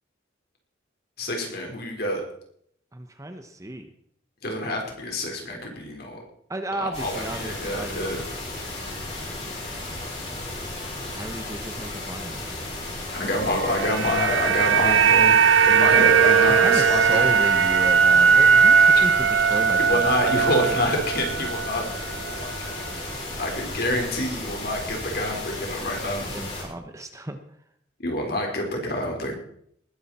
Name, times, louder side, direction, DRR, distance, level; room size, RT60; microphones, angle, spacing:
voice 1, 1.2-2.2 4.4-6.2 6.8-8.2 13.1-17.3 19.8-22.8 23.4-26.2 28.0-29.3, left 1 dB, 55° left, 1 dB, 4.4 m, -27 dB
voice 2, 2.9-3.9 6.5-8.4 11.1-12.6 16.6-20.0 26.1-27.4, right 1 dB, 15° right, 7 dB, 1.0 m, -34 dB
sound 1, 6.9-26.6, left 2 dB, 35° left, 5.8 m, -34 dB
sound 2, 13.5-21.8 22.1-22.3, right 6 dB, 80° right, 0.8 m, -18 dB
20.0 x 11.5 x 4.3 m, 0.68 s
head